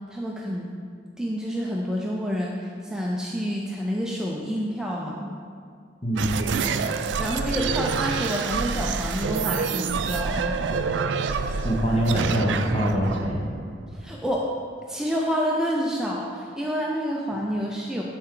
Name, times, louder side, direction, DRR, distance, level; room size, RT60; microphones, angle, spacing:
voice 1, 0.1-0.7 1.2-5.3 7.2-10.6 13.9-14.5 14.9-18.0, equal, 5° right, -3 dB, 0.5 m, -28 dB
voice 2, 6.0-6.6 11.6-13.4, equal, 30° left, -2 dB, 1.2 m, -24 dB
sound 1, 6.1-14.4, right 5 dB, 80° right, 0.4 m, -27 dB
11.0 x 4.4 x 3.8 m, 2.2 s
head